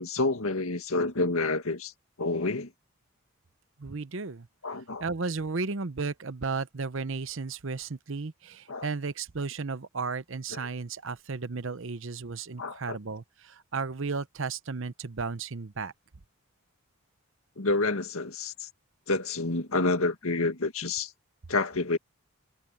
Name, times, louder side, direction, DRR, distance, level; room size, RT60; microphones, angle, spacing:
voice 1, 0.0-1.9 2.2-2.7 4.6-5.0 8.7-8.9 10.5-10.6 12.6-13.0 17.6-18.7 19.1-21.1 21.5-22.0, left 3 dB, 75° left, 1.9 m, -28 dB
voice 2, 3.8-4.5 5.0-15.9, right 4 dB, 60° right, 0.8 m, -34 dB
head